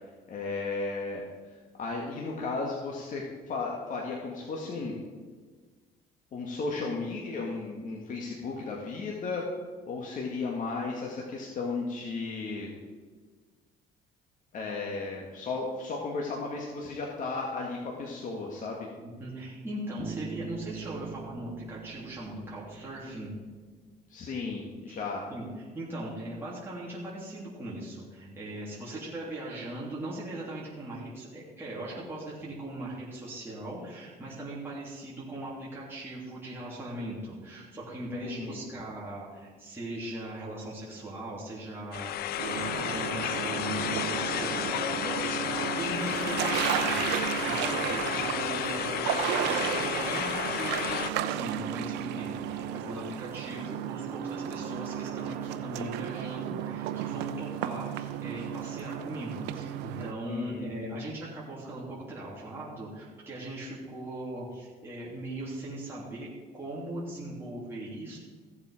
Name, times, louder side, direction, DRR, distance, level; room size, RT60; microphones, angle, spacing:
voice 1, 0.3-1.2 1.8-4.9 6.3-9.4 9.9-12.7 14.5-18.9 24.1-25.3 38.1-38.6 60.3-61.0, left 3 dB, 50° left, -1 dB, 1.9 m, -34 dB
voice 2, 19.0-23.3 24.9-25.0 25.3-25.5 25.7-68.2, right 1 dB, 15° right, -7 dB, 3.2 m, -39 dB
Bass guitar, 20.0-23.8, right 6 dB, 35° right, 0.9 m, -43 dB
sound 1, 41.9-51.1, left 11 dB, 65° left, 0.6 m, -32 dB
sound 2, 42.4-60.1, right 11 dB, 90° right, 0.7 m, -33 dB
15.5 x 7.5 x 5.0 m, 1.5 s
cardioid pair, 110°, 17 cm